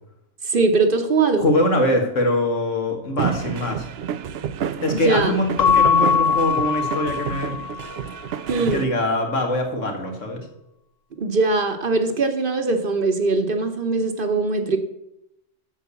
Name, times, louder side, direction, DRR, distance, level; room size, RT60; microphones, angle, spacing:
voice 1, 0.4-1.5 4.9-5.3 8.5-8.9 11.2-14.8, right 3 dB, 50° right, 7 dB, 1.1 m, -21 dB
voice 2, 1.4-3.9 4.8-7.6 8.7-10.5, left 1 dB, 80° left, 3 dB, 2.2 m, -23 dB
sound 1, 3.2-8.8, right 8 dB, 65° right, 0.7 m, -30 dB
Keyboard (musical) / Bell, 5.6-8.0, left 7 dB, 65° left, 0.4 m, -20 dB
8.4 x 6.6 x 6.9 m, 0.84 s
omnidirectional pair, 1.3 m